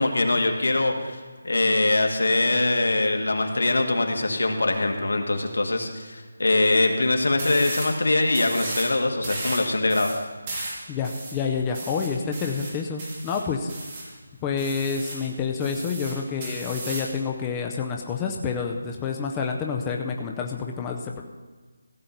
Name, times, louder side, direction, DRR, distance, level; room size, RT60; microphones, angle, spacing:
voice 1, 0.0-10.1, left 2 dB, 85° left, 4 dB, 2.0 m, -23 dB
sound 1, 7.4-8.0 8.3-8.9 9.2-14.1 14.6-15.3 15.6-17.1, right 2 dB, 20° right, 2.3 m, -35 dB
voice 2, 10.9-13.7 14.4-21.2, left 5 dB, 10° left, 2 dB, 0.5 m, -28 dB
15.5 x 5.7 x 8.0 m, 1.4 s
figure-of-eight pair, 175°, 0 cm